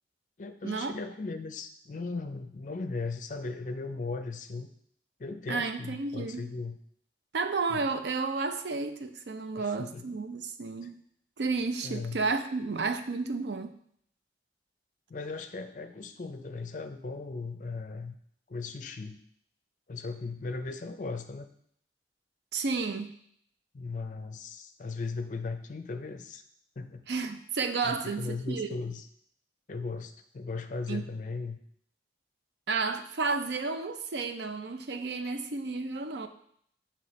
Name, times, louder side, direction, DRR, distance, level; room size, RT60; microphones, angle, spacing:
voice 1, 0.4-4.7 5.2-6.8 7.7-7.9 9.6-10.1 11.8-12.2 15.1-18.1 18.5-19.2 19.9-21.5 23.7-26.4 26.8-27.1 27.8-29.1 29.7-31.6, left 3 dB, 45° left, 8 dB, 0.4 m, -37 dB
voice 2, 5.5-6.5 7.3-11.0 11.4-13.7 22.5-23.2 27.1-28.7 30.9-31.0 32.7-36.3, right 4 dB, 75° right, 8 dB, 0.5 m, -32 dB
7.8 x 3.0 x 4.1 m, 0.66 s
head